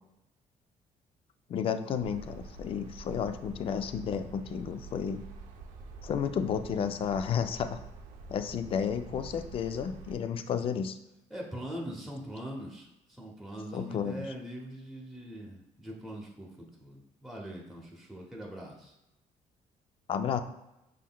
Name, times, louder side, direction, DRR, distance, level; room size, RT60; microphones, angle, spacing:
voice 1, 1.5-5.2 6.0-7.8 8.3-11.0 13.7-14.3 20.1-20.4, left 7 dB, 45° left, 9 dB, 0.3 m, -32 dB
sound 1, 2.0-10.2, right 3 dB, 85° right, 0.6 m, -47 dB
voice 2, 11.3-18.9, equal, ahead, -3 dB, 0.8 m, -42 dB
6.1 x 3.7 x 2.2 m, 0.92 s
cardioid pair, 135°, 13 cm